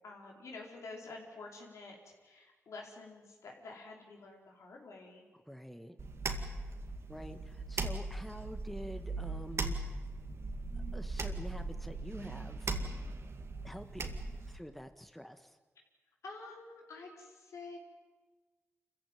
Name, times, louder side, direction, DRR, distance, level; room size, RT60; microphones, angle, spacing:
voice 1, 0.0-5.2 16.2-17.8, left 3 dB, 90° left, 0 dB, 4.7 m, -49 dB
voice 2, 5.3-6.0 7.1-9.9 10.7-12.9 13.6-14.1 14.5-15.6, equal, ahead, 8 dB, 1.6 m, -47 dB
sound 1, 6.0-14.6, right 3 dB, 60° right, 2.1 m, -39 dB
26.5 x 15.5 x 9.3 m, 1.3 s
cardioid pair, 65°, 5 cm